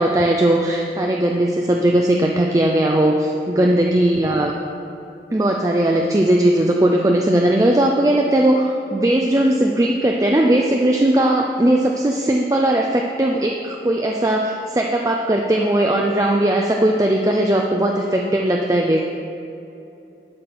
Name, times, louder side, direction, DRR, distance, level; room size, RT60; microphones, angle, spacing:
voice 1, 0.0-4.5 5.3-19.0, right 1 dB, 20° right, 1 dB, 0.4 m, -18 dB
12.0 x 4.3 x 6.5 m, 2.9 s
head